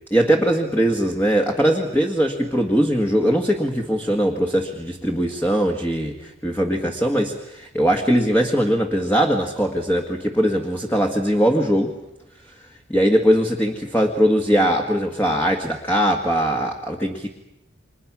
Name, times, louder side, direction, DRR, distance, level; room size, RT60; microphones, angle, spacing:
voice 1, 0.1-11.9 12.9-17.3, equal, 10° left, 2 dB, 1.7 m, -20 dB
29.5 x 25.0 x 6.1 m, 0.89 s
head